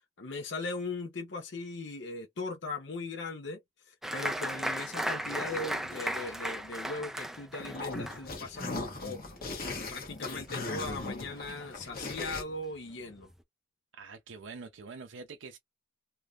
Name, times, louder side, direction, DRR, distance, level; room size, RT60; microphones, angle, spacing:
voice 1, 0.2-8.7 9.0-9.2 9.9-13.3, left 3 dB, 65° left, 0.7 m, -39 dB
Applause, 4.0-11.1 11.3-12.1 12.5-12.6 12.9-13.3, equal, ahead, 0.3 m, -37 dB
sound 1, 7.6-12.4, left 2 dB, 50° left, 1.1 m, -38 dB
voice 2, 13.9-15.6, right 4 dB, 80° right, 0.5 m, -45 dB
3.4 x 2.7 x 2.3 m
head